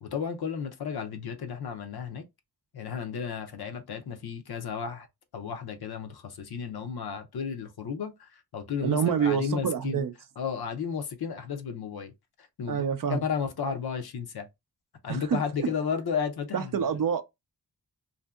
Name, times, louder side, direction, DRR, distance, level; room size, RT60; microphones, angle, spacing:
voice 1, 0.0-2.2 2.7-5.1 5.3-10.0 10.4-12.1 12.6-12.8 13.1-14.5 15.0-16.9, left 6 dB, 65° left, 0.6 m, -33 dB
voice 2, 8.8-10.1 12.7-13.2 15.1-15.7 16.5-17.2, right 7 dB, 55° right, 0.4 m, -27 dB
2.6 x 2.5 x 2.3 m
cardioid pair, 60°, 41 cm